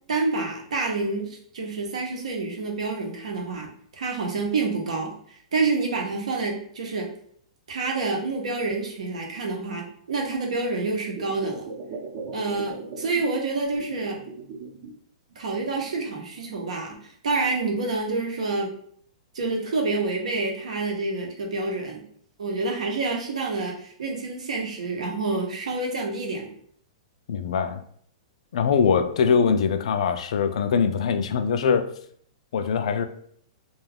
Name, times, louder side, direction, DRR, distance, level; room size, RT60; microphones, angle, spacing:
voice 1, 0.1-7.1 7.7-11.7 12.3-14.2 15.4-17.0 17.2-18.7 19.3-22.0 22.4-26.5, right 3 dB, 85° right, 0.8 m, -28 dB
sound 1, 11.2-13.3 13.5-14.9 15.3-16.2 16.9-17.0, right 4 dB, 55° right, 0.7 m, -39 dB
voice 2, 27.3-27.8 28.5-31.9 32.5-33.0, left 6 dB, 70° left, 0.3 m, -22 dB
2.3 x 2.3 x 3.3 m
hypercardioid pair, 145°, 4 cm